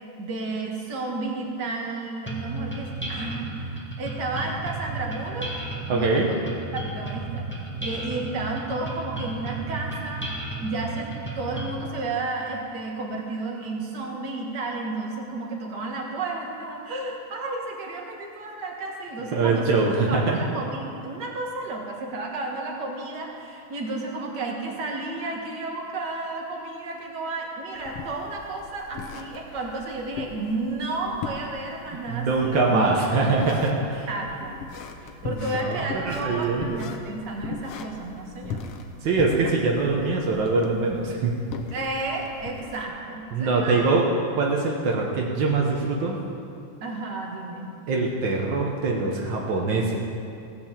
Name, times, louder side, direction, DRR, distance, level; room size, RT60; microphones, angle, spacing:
voice 1, 0.2-5.5 5.9-7.5 7.8-10.3 10.6-19.7 20.1-33.0 33.8-34.5 35.2-38.7 41.7-43.9 46.8-47.7, right 2 dB, 45° right, 0 dB, 1.5 m, -32 dB
sound 1, 2.3-11.9, right 2 dB, 10° left, 0.5 m, -33 dB
voice 2, 5.9-6.3 19.3-20.4 32.1-34.1 35.2-36.8 39.0-41.3 43.3-44.1 44.4-46.2 47.9-50.0, right 3 dB, 70° right, -2 dB, 1.1 m, -23 dB
sound 2, 27.8-42.8, left 5 dB, 75° left, 1.4 m, -39 dB
17.0 x 6.3 x 7.3 m, 2.5 s
omnidirectional pair, 3.6 m